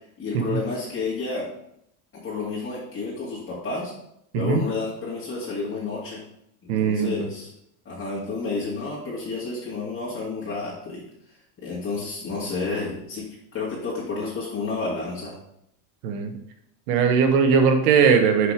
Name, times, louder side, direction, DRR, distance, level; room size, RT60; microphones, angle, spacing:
voice 1, 0.2-1.5 2.2-3.9 4.3-6.2 6.6-7.5 7.9-11.0 11.6-13.3 13.5-15.4, left 4 dB, 30° left, -7 dB, 2.3 m, -30 dB
voice 2, 6.7-7.3 16.0-16.3 16.9-18.5, right 6 dB, 85° right, 6 dB, 1.4 m, -19 dB
6.6 x 4.8 x 5.1 m, 0.75 s
supercardioid pair, 120°, 44 cm